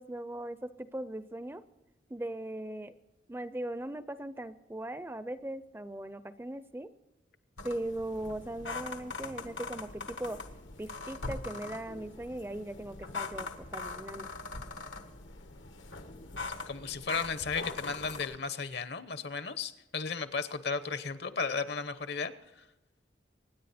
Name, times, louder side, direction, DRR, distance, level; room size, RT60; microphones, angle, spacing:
voice 1, 0.0-1.6 2.1-2.9 3.3-6.9 7.6-10.4 10.8-14.3, right 1 dB, 10° right, 13 dB, 0.4 m, -39 dB
sound 1, 7.6-18.4, left 3 dB, 90° left, 1.4 m, -42 dB
voice 2, 16.7-22.3, left 5 dB, 65° left, 12 dB, 0.9 m, -34 dB
25.0 x 10.0 x 4.3 m, 1.0 s
head